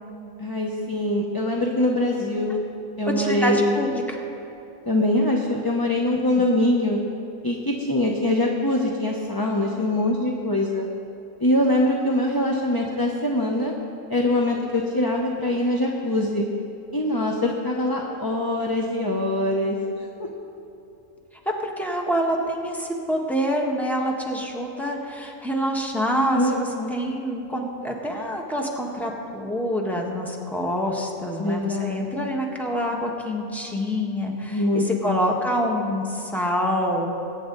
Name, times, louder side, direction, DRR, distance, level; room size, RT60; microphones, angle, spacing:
voice 1, 0.4-2.6 3.0-3.7 4.9-7.0 7.4-10.9 11.4-13.7 14.1-16.4 16.9-19.8 26.3-26.9 31.4-32.0 34.5-35.3, left 1 dB, 20° left, -1 dB, 0.8 m, -23 dB
voice 2, 3.1-4.2 21.4-37.1, equal, ahead, 0 dB, 1.4 m, -26 dB
21.5 x 9.4 x 3.9 m, 2.7 s
omnidirectional pair, 1.3 m